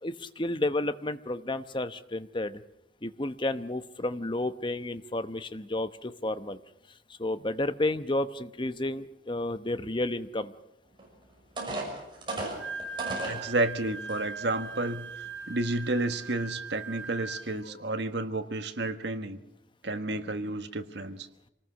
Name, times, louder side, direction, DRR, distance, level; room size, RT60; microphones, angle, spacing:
voice 1, 0.0-2.6 3.0-6.6 7.2-10.5, left 2 dB, 25° left, 11 dB, 0.9 m, -31 dB
sound 1, 11.0-11.1 11.6-13.4 14.1-14.2 14.7-14.9, right 2 dB, 25° right, 6.2 m, -34 dB
Wind instrument woodwind instrument, 12.4-17.7, right 4 dB, 85° right, 6.1 m, -40 dB
voice 2, 13.2-15.1 15.5-19.4 19.8-21.3, right 2 dB, 65° right, 8 dB, 1.5 m, -31 dB
26.5 x 19.0 x 6.4 m, 0.86 s
head